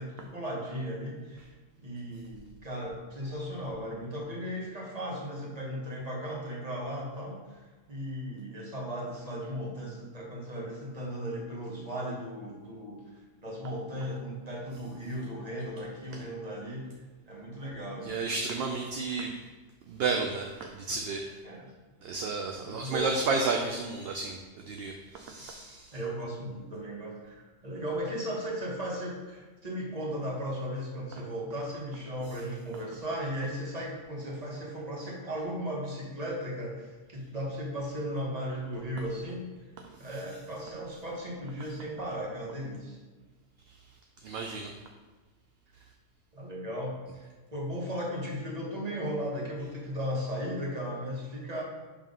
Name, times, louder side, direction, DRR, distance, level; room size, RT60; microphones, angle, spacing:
voice 1, 0.0-16.9 17.3-18.2 21.4-21.7 22.6-23.1 25.9-39.4 40.0-43.0 45.8-45.9 46.3-51.6, equal, 30° right, -3 dB, 1.3 m, -36 dB
voice 2, 18.0-19.4 19.9-21.3 22.0-26.0 39.8-40.1 43.7-43.8 44.2-44.7, right 4 dB, 65° right, 3 dB, 0.7 m, -32 dB
5.4 x 3.5 x 5.2 m, 1.3 s
omnidirectional pair, 1.3 m